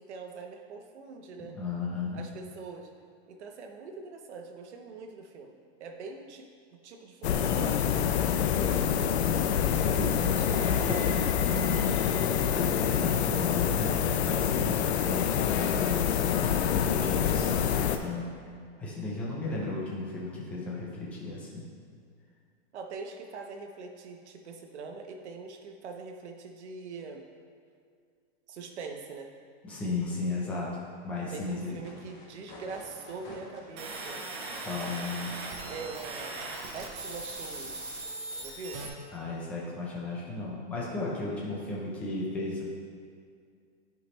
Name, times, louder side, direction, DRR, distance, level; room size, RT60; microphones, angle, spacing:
voice 1, 0.1-1.6 2.1-2.9 3.3-5.5 5.8-9.1 9.7-11.3 22.7-27.2 28.5-29.3 31.3-34.2 35.7-36.4 36.7-37.7 38.4-38.8, right 4 dB, 80° right, 3 dB, 1.1 m, -43 dB
voice 2, 1.5-2.2 10.0-12.1 12.4-14.0 14.2-18.3 18.8-21.7 29.6-30.7 31.0-31.8 34.6-35.3 39.1-42.6, left 3 dB, 5° left, -5 dB, 0.4 m, -34 dB
sound 1, 7.2-18.0, left 9 dB, 70° left, 0.6 m, -26 dB
sound 2, 31.8-33.7 36.1-36.2, left 2 dB, 40° left, 1.7 m, -48 dB
sound 3, 33.8-38.9, right 2 dB, 25° right, 0.7 m, -39 dB
11.0 x 5.0 x 3.1 m, 2.2 s
supercardioid pair, 170°, 33 cm